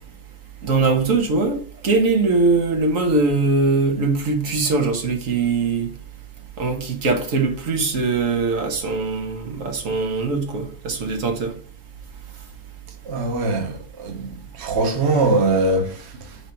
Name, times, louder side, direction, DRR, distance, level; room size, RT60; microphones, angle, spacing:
voice 1, 0.6-5.9 6.6-11.5, right 3 dB, 85° right, 1.6 m, -21 dB
voice 2, 13.0-16.4, right 2 dB, 60° right, 1.3 m, -22 dB
5.0 x 4.5 x 5.3 m
omnidirectional pair, 1.3 m